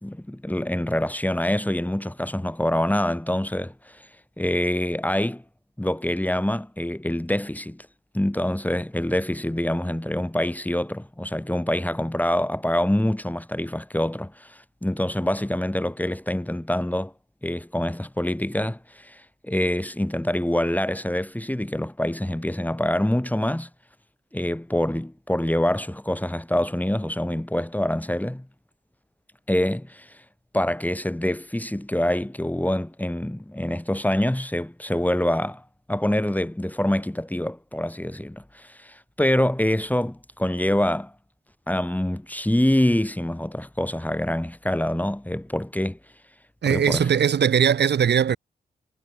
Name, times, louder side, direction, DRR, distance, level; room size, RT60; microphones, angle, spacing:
voice 1, 0.0-4.1 4.4-5.4 5.8-7.9 8.1-17.1 17.4-23.7 24.3-28.5 29.5-30.2 30.5-41.1 41.7-46.0 46.6-47.1, left 1 dB, 10° left, 2.4 m, -25 dB
voice 2, 46.6-48.4, right 8 dB, 75° right, 4.4 m, -20 dB
supercardioid pair, 40°, 18 cm